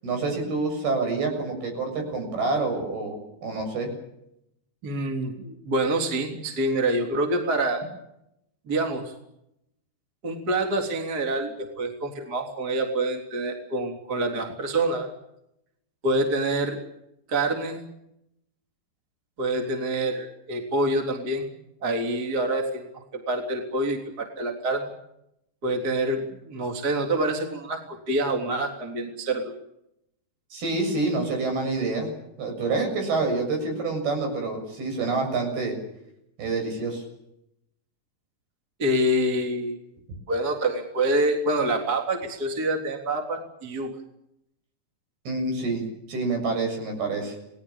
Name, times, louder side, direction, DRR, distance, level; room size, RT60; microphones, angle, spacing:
voice 1, 0.0-3.9 30.5-32.1 32.4-35.7 36.4-37.0 45.3-47.4, right 3 dB, 60° right, 4 dB, 9.1 m, -27 dB
voice 2, 4.8-7.8 8.7-9.1 10.2-15.1 16.0-16.8 17.3-17.8 19.4-21.5 21.8-22.8 23.3-24.9 25.6-29.5 38.8-39.8 40.3-43.9, right 1 dB, 25° right, 3 dB, 3.4 m, -26 dB
29.5 x 19.5 x 7.3 m, 0.80 s
omnidirectional pair, 5.0 m